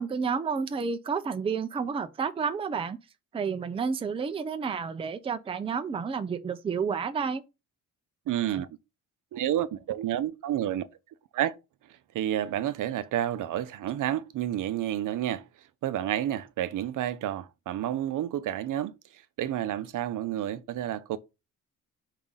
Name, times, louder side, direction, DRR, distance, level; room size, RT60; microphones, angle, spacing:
voice 1, 0.0-3.0 3.3-7.4, right 5 dB, 15° right, 0.4 m, -30 dB
voice 2, 8.3-8.7 9.3-10.9 11.3-11.6 12.1-15.4 15.8-21.2, right 12 dB, 65° right, 0.6 m, -30 dB
4.9 x 3.7 x 5.6 m
cardioid pair, 170°, 33 cm